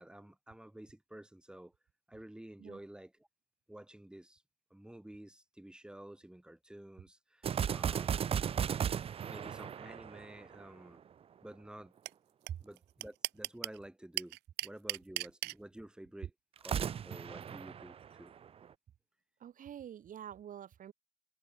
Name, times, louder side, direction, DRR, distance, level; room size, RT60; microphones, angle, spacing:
voice 1, 0.0-1.7 2.1-3.1 3.7-4.4 4.7-8.3 9.2-11.0 11.4-11.9 12.6-14.4 14.6-18.3, right 1 dB, 5° right, 5.3 m, -51 dB
sound 1, 7.4-10.9 16.6-18.7, right 8 dB, 35° right, 0.6 m, -35 dB
sound 2, 12.1-12.2 12.5-12.6 12.8-13.8 14.2-15.5, right 20 dB, 90° right, 1.3 m, -35 dB
voice 2, 19.4-20.9, right 9 dB, 50° right, 3.7 m, -47 dB
cardioid pair, 110°, 17 cm